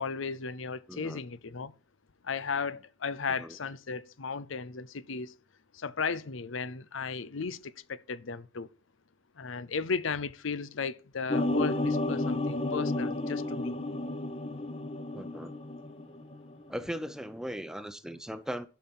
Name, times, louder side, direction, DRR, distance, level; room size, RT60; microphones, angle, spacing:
voice 1, 0.0-1.7 2.2-5.3 5.7-8.7 9.4-13.8, left 5 dB, 75° left, 0.7 m, -35 dB
voice 2, 0.9-1.2 3.4-3.6 15.1-15.5 16.7-18.7, equal, 5° right, 0.8 m, -38 dB
sound 1, 11.3-16.5 16.8-17.3, left 2 dB, 30° left, 1.0 m, -31 dB
11.5 x 5.8 x 7.1 m
head